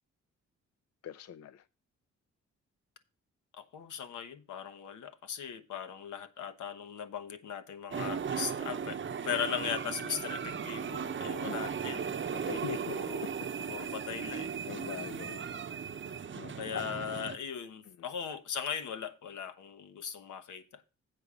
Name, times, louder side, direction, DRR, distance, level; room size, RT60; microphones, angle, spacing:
voice 1, 1.0-1.6 11.4-11.6 12.3-13.3 14.1-15.4 15.8-16.1 16.3-16.9 17.9-18.0, left 9 dB, 60° left, 0.5 m, -43 dB
voice 2, 3.5-12.1 12.9-13.3 13.7-14.5 16.6-20.8, left 8 dB, 85° left, 1.2 m, -39 dB
sound 1, 7.9-17.4, right 7 dB, 40° right, 0.8 m, -37 dB
8.1 x 5.0 x 6.9 m
cardioid pair, 100°, 29 cm